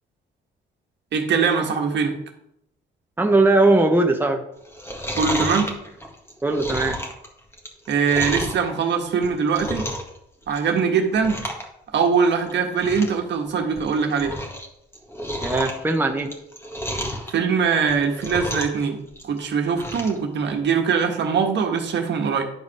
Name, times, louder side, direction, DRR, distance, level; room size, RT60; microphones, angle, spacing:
voice 1, 1.1-2.2 5.2-5.7 7.9-9.9 10.5-11.4 11.9-14.3 17.3-22.4, right 6 dB, 65° right, 3 dB, 1.5 m, -22 dB
voice 2, 3.2-4.4 6.4-7.0 15.4-16.3, right 2 dB, 10° right, 3 dB, 1.0 m, -19 dB
Chewing mastication, 4.6-8.6 9.1-10.2 10.4-10.8 11.1-11.6 11.9-12.0 12.5-12.6 12.8-13.2 13.6-14.6 14.9-17.3 17.8-18.8 19.1-20.2 20.6-20.7, equal, 10° left, 1.9 m, -31 dB
10.5 x 5.0 x 4.9 m, 0.78 s
cardioid pair, 90°, 20 cm